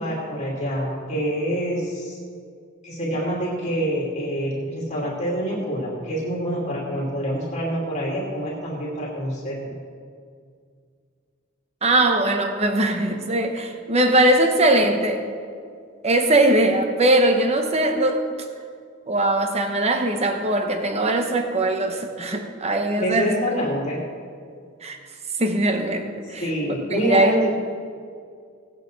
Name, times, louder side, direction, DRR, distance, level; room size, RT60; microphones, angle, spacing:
voice 1, 0.0-2.2 2.8-9.7 22.9-24.0 26.2-27.5, equal, 35° left, -5 dB, 2.6 m, -26 dB
voice 2, 11.8-15.2 16.0-18.3 19.1-23.3 24.8-25.0 25.4-26.4 26.9-27.3, right 1 dB, 30° right, 5 dB, 0.9 m, -20 dB
18.5 x 8.3 x 4.0 m, 2.2 s
head